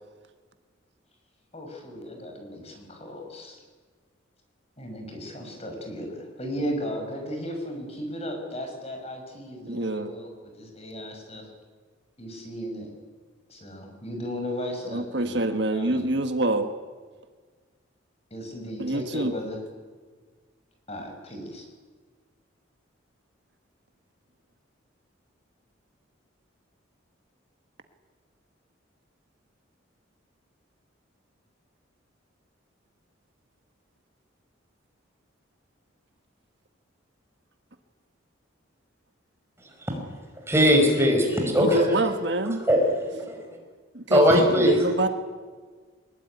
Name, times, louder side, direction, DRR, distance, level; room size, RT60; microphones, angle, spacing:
voice 1, 1.5-3.6 4.8-11.5 12.2-12.9 13.5-15.4 15.7-16.2 18.3-19.6 20.9-21.7, equal, 30° left, 3 dB, 5.8 m, -36 dB
voice 2, 9.6-10.1 14.9-16.7 18.8-19.4 41.4-42.6 43.9-45.1, right 1 dB, 60° right, 7 dB, 1.6 m, -26 dB
voice 3, 40.5-41.9 42.7-42.8 43.0-43.4 44.1-44.7, equal, 15° right, 2 dB, 5.4 m, -19 dB
22.0 x 21.0 x 9.9 m, 1.5 s
head